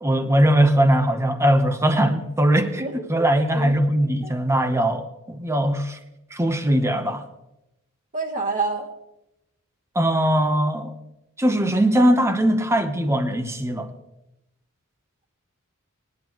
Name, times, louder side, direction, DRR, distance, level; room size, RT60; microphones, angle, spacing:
voice 1, 0.0-6.0 6.3-7.3 9.9-10.9 11.4-13.9, right 1 dB, 15° right, 0.9 m, -20 dB
voice 2, 3.3-3.7 4.0-4.3 8.1-8.9, right 3 dB, 35° right, 1.9 m, -28 dB
20.5 x 10.5 x 3.1 m
head